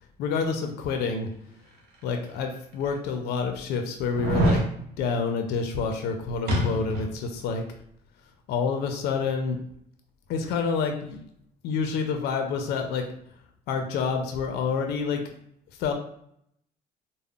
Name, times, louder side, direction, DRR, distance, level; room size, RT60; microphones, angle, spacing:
voice 1, 0.2-1.3 2.0-7.6 8.5-9.6 10.3-11.2 11.6-13.1 13.7-15.2 15.8-15.9, left 5 dB, 75° left, 4 dB, 0.4 m, -28 dB
sound 1, 2.1-2.2 2.9-3.0 4.1-4.7 6.5-7.1 7.5-7.6, equal, 65° right, 0.7 m, -24 dB
3.5 x 2.0 x 2.3 m, 0.70 s
cardioid pair, 110°, 17 cm